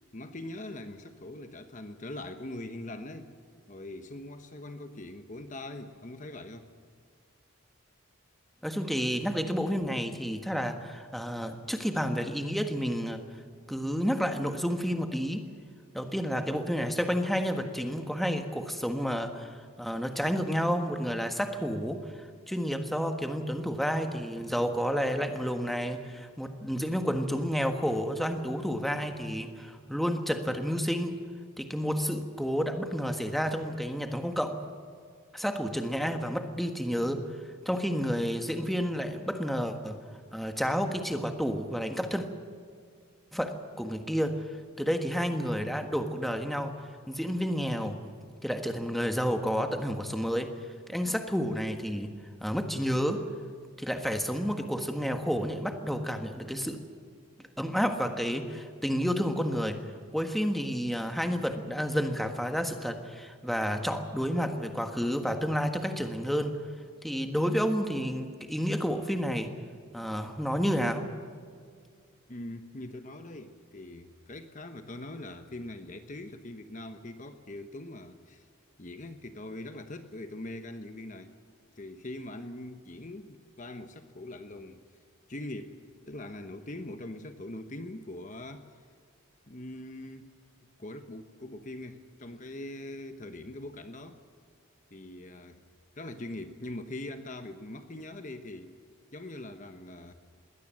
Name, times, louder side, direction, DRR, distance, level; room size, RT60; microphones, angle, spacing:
voice 1, 0.1-3.3 3.7-6.7 72.3-78.5 78.8-81.3 81.8-84.9 85.3-85.8 86.1-88.7 89.5-90.3 90.8-94.2 94.9-95.6 96.0-98.8 99.1-100.1, left 1 dB, 35° left, 8 dB, 1.1 m, -42 dB
voice 2, 8.6-13.2 13.7-15.5 15.9-31.2 31.6-34.6 35.3-37.2 37.6-40.0 40.3-42.3 43.3-44.4 44.8-46.7 47.1-48.0 48.4-50.5 50.9-52.1 52.4-53.3 53.8-56.8 57.6-59.8 60.1-66.6 67.0-69.5 69.9-71.1, equal, ahead, 5 dB, 1.5 m, -30 dB
21.5 x 17.5 x 7.7 m, 2.1 s
head